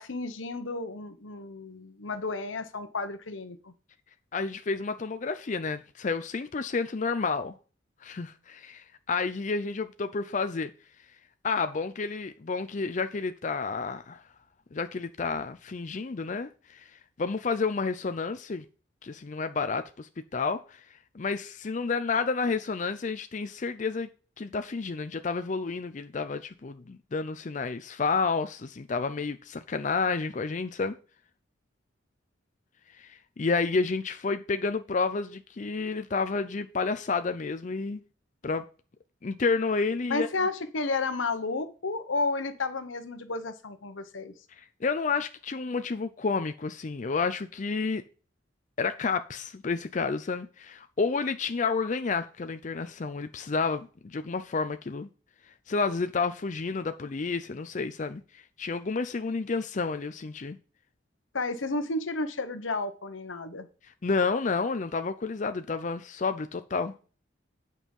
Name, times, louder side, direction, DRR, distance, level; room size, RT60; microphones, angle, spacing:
voice 1, 0.0-3.7 40.1-44.3 61.3-63.7, left 3 dB, 85° left, 1.0 m, -32 dB
voice 2, 4.3-7.5 8.0-10.7 11.4-14.2 14.7-18.6 19.0-24.1 24.4-31.0 32.9-38.0 38.4-38.7 39.2-40.3 44.6-48.0 48.8-55.1 55.5-60.6 63.8-66.9, left 4 dB, 40° left, 0.5 m, -30 dB
8.7 x 5.5 x 5.3 m
head